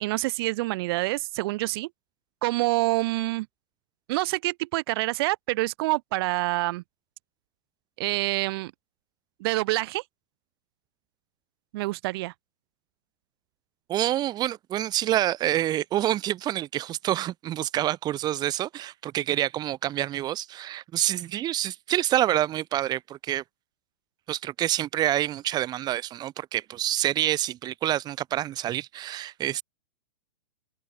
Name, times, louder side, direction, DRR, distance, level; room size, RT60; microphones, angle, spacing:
voice 1, 0.0-1.9 2.4-3.5 4.1-6.8 8.0-8.7 9.4-10.0 11.7-12.3, right 21 dB, 50° right, 1.0 m, -27 dB
voice 2, 13.9-23.4 24.3-29.6, right 13 dB, 25° right, 1.2 m, -27 dB
hypercardioid pair, 135°, 17 cm